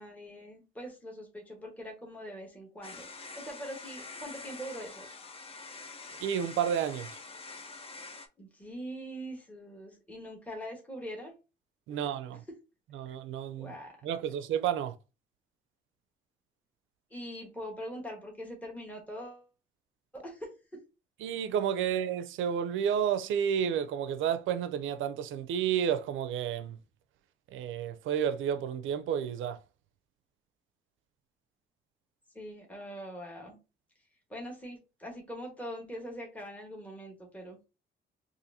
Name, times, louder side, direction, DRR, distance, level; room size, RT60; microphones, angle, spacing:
voice 1, 0.0-3.1 3.4-5.1 8.4-11.4 11.9-12.0 13.6-14.0 17.1-19.5 20.1-20.8 32.3-33.6 34.3-37.7, equal, 5° left, 1.3 m, -43 dB
sound 1, 2.8-8.3, left 3 dB, 30° left, 0.6 m, -46 dB
voice 2, 6.2-7.2 11.9-12.4 12.9-13.8 14.0-15.0 21.2-26.8 27.5-29.6, right 9 dB, 80° right, 0.5 m, -31 dB
4.1 x 2.6 x 2.6 m
cardioid pair, 90°, 20 cm